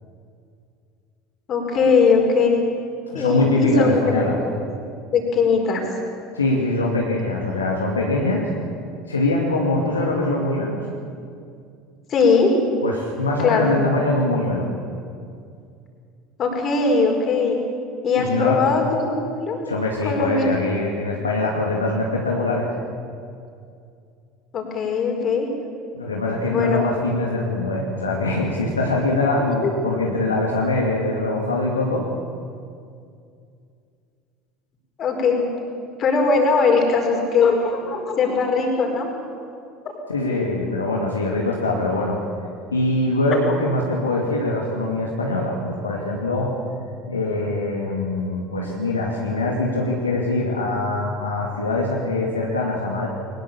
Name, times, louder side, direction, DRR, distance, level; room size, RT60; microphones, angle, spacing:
voice 1, 1.5-2.6 3.1-4.5 5.1-5.8 12.1-12.5 13.4-13.8 16.4-17.6 18.0-19.6 20.0-20.5 24.5-25.5 26.4-26.9 29.4-29.7 35.0-35.4 36.0-39.1, left 4 dB, 40° left, 2 dB, 4.9 m, -20 dB
voice 2, 3.1-4.4 6.4-8.5 9.1-10.8 12.8-14.7 18.2-18.6 19.7-22.7 25.9-32.0 40.1-42.2 42.7-46.5 47.1-53.1, left 2 dB, 80° left, -2 dB, 2.4 m, -23 dB
22.0 x 20.5 x 7.2 m, 2.4 s
figure-of-eight pair, 70°, 0 cm